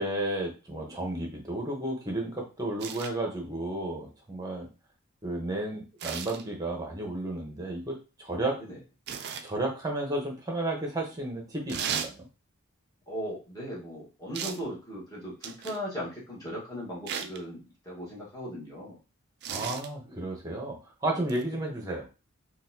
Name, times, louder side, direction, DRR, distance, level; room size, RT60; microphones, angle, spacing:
voice 1, 0.0-4.7 5.2-8.6 9.4-12.3 19.5-22.1, right 1 dB, 15° right, 1 dB, 0.9 m, -32 dB
sound 1, 2.8-3.1 6.0-6.4 9.1-9.5 11.7-12.1 14.3-14.7 15.4-15.8 17.1-17.4 19.4-19.9 21.3-21.4, right 7 dB, 50° right, 0.4 m, -35 dB
voice 2, 13.1-17.6 17.8-19.0, equal, 15° left, -5 dB, 1.3 m, -38 dB
4.0 x 2.4 x 2.7 m, 0.31 s
head